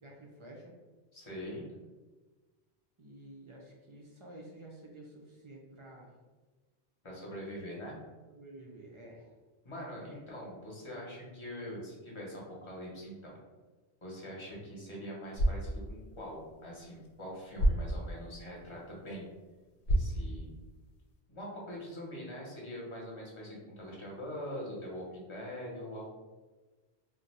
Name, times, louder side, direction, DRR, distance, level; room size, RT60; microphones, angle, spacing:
voice 1, 0.0-0.7 3.0-6.1 8.3-9.3 10.1-10.2, right 1 dB, 55° right, -2 dB, 0.3 m, -51 dB
voice 2, 1.1-1.6 7.0-8.0 9.6-13.4 14.0-19.3 19.9-20.5 21.3-26.1, equal, 30° left, -4 dB, 0.7 m, -43 dB
sound 1, 15.2-21.2, equal, 85° left, 0.9 m, -34 dB
2.6 x 2.1 x 4.0 m, 1.3 s
omnidirectional pair, 1.1 m